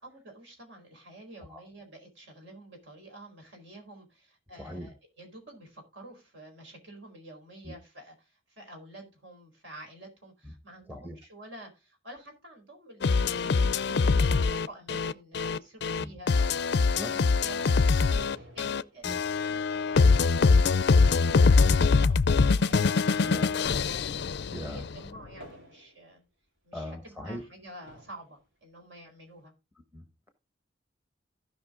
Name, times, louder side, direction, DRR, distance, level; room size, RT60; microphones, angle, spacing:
voice 1, 0.0-24.1 24.5-26.2 26.6-29.5, right 1 dB, 65° right, 4.4 m, -49 dB
voice 2, 4.6-4.9 7.6-7.7 10.4-10.5 10.9-11.2 16.0-16.1 16.9-17.2 19.0-19.2 23.2-23.5 24.5-24.8 26.7-27.4 29.9-30.3, left 1 dB, 10° right, 1.1 m, -39 dB
sound 1, 13.0-25.0, left 4 dB, 60° left, 0.5 m, -23 dB
sound 2, 17.5-19.7 20.1-20.3 20.6-24.1 25.4-26.2 27.0-27.1 27.8-28.4, right 1 dB, 85° right, 4.1 m, -52 dB
15.5 x 5.5 x 3.7 m
head